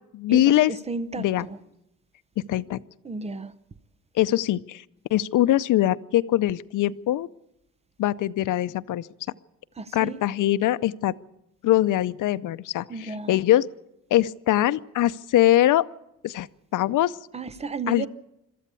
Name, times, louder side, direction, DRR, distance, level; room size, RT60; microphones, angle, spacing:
voice 1, 0.1-0.7 1.2-1.5 2.5-2.8 4.2-4.8 5.1-7.3 8.0-9.1 9.9-11.1 11.6-13.7 14.1-15.9 16.2-16.5 16.7-17.2 17.9-18.1, left 14 dB, 80° left, 0.6 m, -22 dB
voice 2, 0.7-1.6 3.0-3.5 9.8-10.2 12.9-13.4 17.3-18.1, right 4 dB, 20° right, 0.7 m, -33 dB
22.5 x 13.5 x 8.4 m
wide cardioid pair, 175°, 31 cm